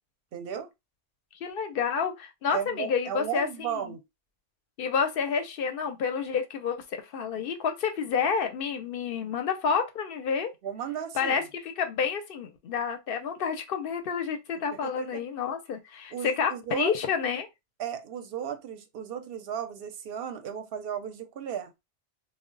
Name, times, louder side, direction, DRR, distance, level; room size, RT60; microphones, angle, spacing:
voice 1, 0.3-0.7 2.5-4.0 10.6-11.5 14.8-15.2 16.1-16.9 17.8-21.7, right 8 dB, 65° right, 0.7 m, -35 dB
voice 2, 1.4-3.9 4.8-10.5 11.1-17.5, left 6 dB, 60° left, 0.7 m, -29 dB
2.0 x 2.0 x 3.7 m
omnidirectional pair, 1.2 m